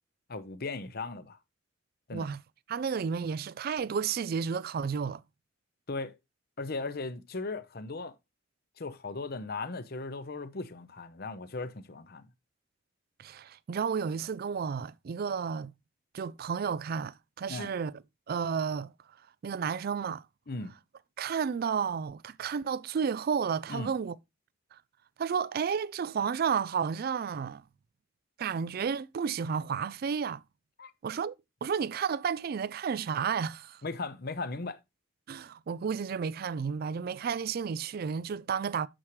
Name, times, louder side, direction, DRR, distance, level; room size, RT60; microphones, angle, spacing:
voice 1, 0.3-1.4 2.1-2.3 5.9-6.2 6.6-8.1 8.8-12.3 17.5-17.7 20.5-20.7 23.7-23.9 30.8-30.9 33.8-34.8, left 3 dB, 50° left, 0.8 m, -37 dB
voice 2, 2.7-5.2 13.2-15.7 16.1-17.9 18.3-18.9 19.4-20.2 21.2-24.2 24.7-24.8 25.2-27.6 28.4-30.4 31.0-31.3 31.6-33.8 35.3-38.9, right 6 dB, 50° right, 0.3 m, -32 dB
8.7 x 6.4 x 3.1 m
head